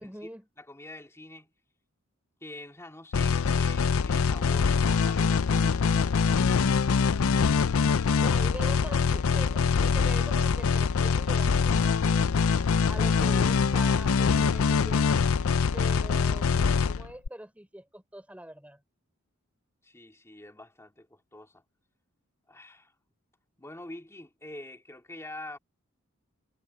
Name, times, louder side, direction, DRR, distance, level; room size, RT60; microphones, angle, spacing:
voice 1, 0.0-0.4 8.2-12.4 12.9-15.1 15.7-18.8, right 1 dB, 5° right, 4.3 m, -43 dB
voice 2, 0.6-1.5 2.4-6.4 19.8-21.6 22.5-23.0 23.6-25.6, left 1 dB, 15° left, 2.4 m, -45 dB
sound 1, 3.1-17.3, left 5 dB, 75° left, 0.5 m, -24 dB
head